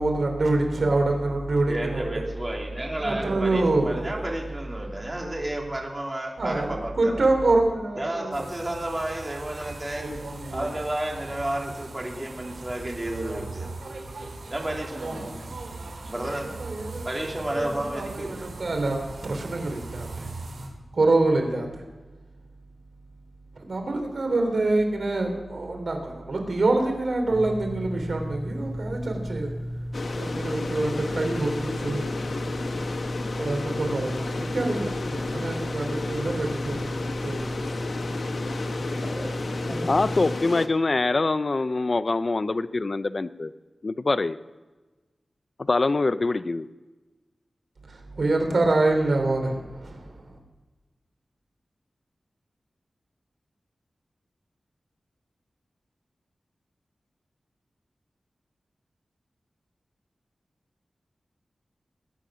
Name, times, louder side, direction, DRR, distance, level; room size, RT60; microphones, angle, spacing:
voice 1, 0.0-2.0 3.0-4.1 6.4-8.3 16.6-17.1 17.6-17.7 17.9-19.0 19.2-20.1 20.9-21.7 23.6-29.5 30.1-32.0 33.4-37.5 48.2-50.0, right 2 dB, 65° right, 3 dB, 3.5 m, -25 dB
voice 2, 1.7-7.2 8.0-10.1 10.5-13.7 14.5-15.5 16.0-16.5 17.0-18.4, right 1 dB, 25° right, 0 dB, 3.2 m, -32 dB
sound 1, 8.3-20.7, right 2 dB, 85° right, 4.3 m, -39 dB
sound 2, 27.3-40.4, equal, 5° right, 3.8 m, -34 dB
sound 3, 29.9-40.7, left 3 dB, 65° left, 1.0 m, -33 dB
voice 3, 39.8-43.5 43.8-44.4 45.6-46.7, left 3 dB, 45° left, 14 dB, 0.5 m, -24 dB
20.0 x 10.0 x 6.3 m, 1.2 s
wide cardioid pair, 75°, 0 cm